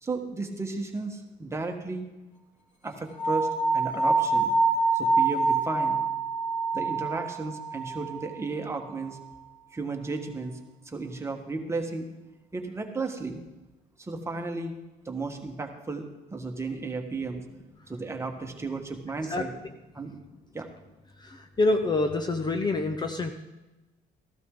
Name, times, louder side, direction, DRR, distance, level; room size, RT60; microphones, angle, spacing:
voice 1, 0.0-2.1 2.8-4.5 4.9-6.0 6.7-9.2 9.7-10.6 10.8-12.1 12.5-13.4 14.0-14.7 15.0-17.4 17.9-19.5 19.9-20.2 20.5-20.7, right 3 dB, 15° right, 3 dB, 1.6 m, -34 dB
sound 1, 3.2-8.3, right 3 dB, 45° left, 2.0 m, -26 dB
voice 2, 21.2-23.3, left 2 dB, 25° left, 6 dB, 0.8 m, -26 dB
14.5 x 12.5 x 3.8 m, 1.1 s
cardioid pair, 110°, 17 cm